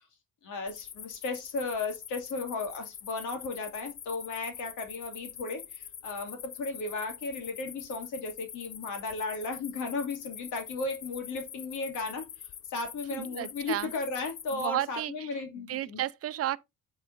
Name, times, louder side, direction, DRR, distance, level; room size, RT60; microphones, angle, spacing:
voice 1, 0.4-12.2 12.7-16.0, left 3 dB, 85° left, 2.7 m, -35 dB
sound 1, 0.7-14.7, left 9 dB, 45° left, 0.8 m, -45 dB
voice 2, 13.1-13.9 14.5-15.3 15.7-16.6, right 12 dB, 50° right, 0.6 m, -32 dB
8.5 x 4.9 x 3.8 m
cardioid pair, 90°, 30 cm